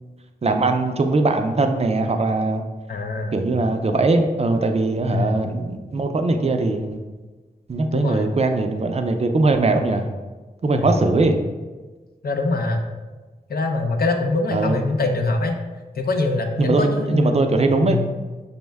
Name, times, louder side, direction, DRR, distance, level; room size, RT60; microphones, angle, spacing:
voice 1, 0.4-2.6 3.3-7.0 7.7-10.0 10.6-11.4 14.5-14.8 16.6-18.0, right 3 dB, 40° right, 5 dB, 0.4 m, -20 dB
voice 2, 2.9-3.4 5.1-5.5 7.9-8.3 10.7-11.0 12.2-12.8 13.5-15.6 16.0-18.1, left 2 dB, 75° left, 4 dB, 0.5 m, -23 dB
5.3 x 2.1 x 3.3 m, 1.3 s
wide cardioid pair, 70°, 16 cm